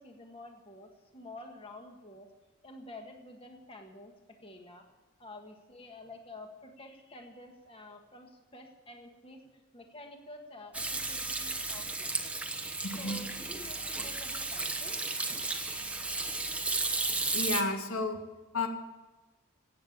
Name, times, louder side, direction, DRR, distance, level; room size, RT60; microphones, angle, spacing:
voice 1, 0.0-2.3 2.6-4.9 5.2-9.4 9.7-12.3 13.0-15.1, left 2 dB, 25° left, 3 dB, 1.6 m, -49 dB
Hands / Sink (filling or washing), 10.7-17.6, right 3 dB, 5° right, 0.9 m, -34 dB
voice 2, 12.8-13.2 17.3-18.2 18.5-18.7, left 2 dB, 75° left, 5 dB, 1.8 m, -32 dB
17.0 x 8.3 x 7.2 m, 1.2 s
head